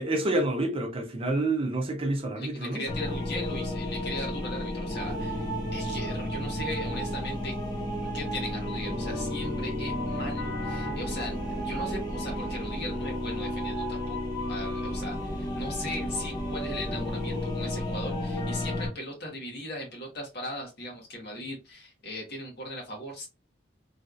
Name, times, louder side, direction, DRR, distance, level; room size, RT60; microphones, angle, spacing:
voice 1, 0.0-2.8, right 2 dB, 30° right, 0.6 m, -28 dB
voice 2, 2.4-7.5 7.9-14.2 14.5-23.3, left 1 dB, 55° left, 1.3 m, -38 dB
sound 1, 2.9-18.9, left 1 dB, 20° left, 0.8 m, -32 dB
3.2 x 2.7 x 2.4 m
head